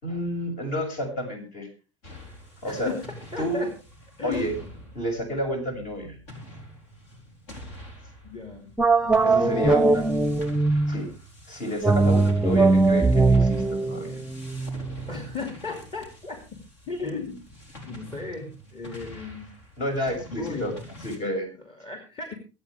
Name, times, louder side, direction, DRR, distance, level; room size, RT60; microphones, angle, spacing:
voice 1, 0.0-1.7 2.6-2.9 3.4-3.6 4.2-4.5 4.9-6.2 9.2-10.0 10.9-11.1 11.5-14.2 19.8-20.7 21.0-21.5, equal, 55° left, 4 dB, 6.4 m, -30 dB
sound 1, 2.0-21.2, left 1 dB, 70° left, 3.6 m, -45 dB
voice 2, 2.6-3.0 3.3-3.7 4.2-4.6 8.2-8.7 9.0-10.0 15.1-19.5 20.3-20.8 21.7-22.3, left 4 dB, 35° left, 5 dB, 2.7 m, -36 dB
sound 2, 8.8-11.1 11.8-15.2, right 3 dB, 5° right, 0.7 m, -21 dB
23.5 x 8.7 x 3.4 m, 0.32 s
hypercardioid pair, 75°, 15 cm